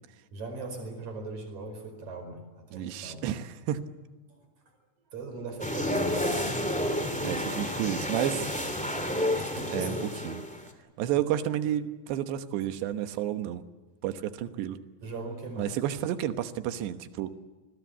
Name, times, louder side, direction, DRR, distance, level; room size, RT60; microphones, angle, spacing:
voice 1, 0.3-3.4 4.3-4.5 5.1-6.4 8.8-10.0 15.0-15.7, right 3 dB, 40° right, 6 dB, 5.9 m, -40 dB
voice 2, 2.7-3.8 6.9-8.5 9.7-10.4 11.0-13.6 14.0-14.8 15.6-17.3, right 11 dB, 75° right, 10 dB, 3.2 m, -31 dB
sound 1, 5.6-10.7, left 1 dB, 5° left, 0.9 m, -30 dB
28.0 x 20.5 x 8.2 m, 1.3 s
omnidirectional pair, 5.4 m